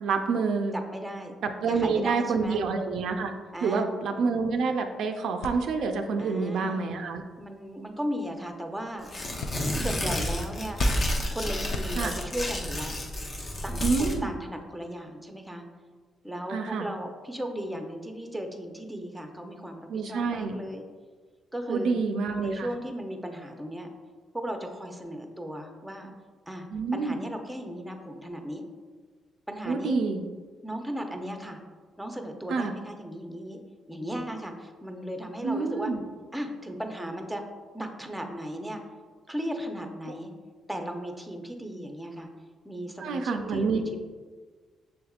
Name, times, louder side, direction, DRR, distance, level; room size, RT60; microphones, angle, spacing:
voice 1, 0.0-0.8 1.4-3.3 3.6-7.2 12.0-12.1 13.8-14.3 16.5-16.9 19.9-20.6 21.7-22.7 26.7-27.2 29.7-30.2 32.5-32.7 35.4-36.0 43.0-43.8, right 4 dB, 75° right, 5 dB, 0.3 m, -27 dB
voice 2, 0.7-1.4 1.7-2.6 3.5-3.8 6.2-6.9 7.4-9.1 9.7-10.8 11.3-13.0 13.6-15.6 16.2-20.8 21.5-22.0 22.4-23.9 24.3-26.1 26.5-28.6 29.5-30.0 30.6-31.6 32.0-33.6 33.9-35.9 36.3-37.4 37.7-38.8 39.3-40.3 40.7-42.3 42.6-44.0, equal, 5° right, 4 dB, 0.6 m, -36 dB
sound 1, 5.4-12.5, left 3 dB, 85° left, 0.3 m, -42 dB
Tearing, 9.0-14.2, left 1 dB, 35° left, 0.7 m, -30 dB
6.3 x 3.4 x 2.3 m, 1.4 s
cardioid pair, 90°, 0 cm